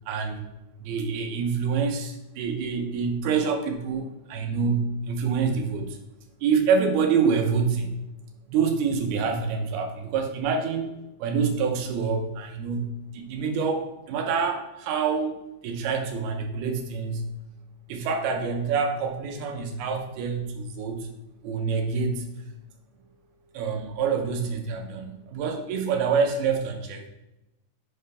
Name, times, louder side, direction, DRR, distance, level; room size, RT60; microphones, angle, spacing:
voice 1, 0.1-0.5 0.8-6.0 6.4-8.0 8.5-10.9 11.2-15.4 15.6-17.3 17.9-21.1 21.4-22.2 23.5-27.1, right 5 dB, 90° right, 3 dB, 2.8 m, -26 dB
7.2 x 4.4 x 5.5 m, 0.92 s
omnidirectional pair, 4.3 m